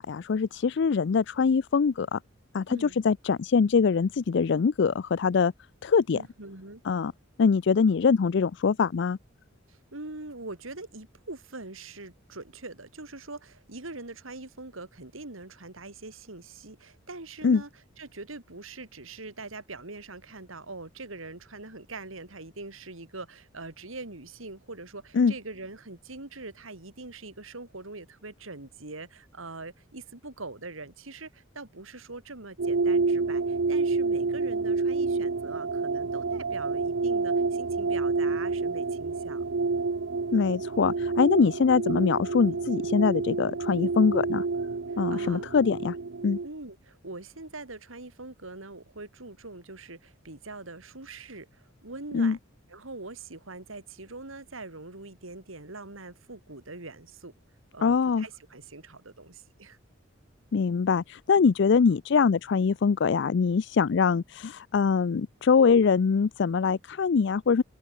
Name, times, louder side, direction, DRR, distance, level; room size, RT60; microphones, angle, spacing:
voice 1, 0.0-2.2 2.5-5.5 5.8-6.2 6.9-7.1 7.4-9.2 17.4-17.6 25.1-25.3 40.3-44.4 45.0-46.0 46.2-46.4 52.1-52.4 57.8-58.3 60.5-67.6, left 5 dB, 60° left, 0.4 m, -23 dB
voice 2, 6.1-6.8 9.7-17.7 18.0-39.4 44.9-45.4 46.4-52.4 52.7-57.3 57.7-59.8, right 3 dB, 90° right, 3.4 m, -43 dB
sound 1, 32.6-46.5, right 4 dB, 70° right, 0.7 m, -28 dB
open air
head